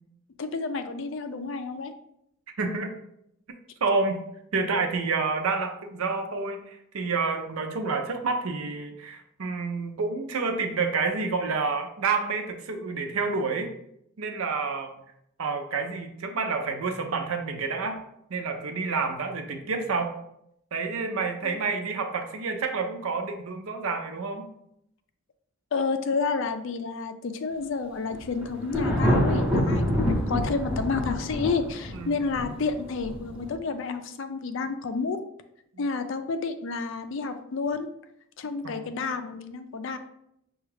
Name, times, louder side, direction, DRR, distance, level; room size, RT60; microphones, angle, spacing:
voice 1, 0.4-1.9 21.4-21.6 25.7-35.2 35.8-37.9 38.4-40.0, left 4 dB, 60° left, 9 dB, 0.4 m, -30 dB
voice 2, 2.6-2.9 3.8-4.2 4.5-13.7 14.2-14.9 15.4-18.0 18.3-20.2 20.7-24.5 32.0-32.1 38.6-38.9, right 4 dB, 75° right, 5 dB, 0.6 m, -29 dB
Thunder, 28.1-33.5, equal, 5° right, 0.6 m, -26 dB
5.8 x 2.3 x 3.2 m, 0.77 s
head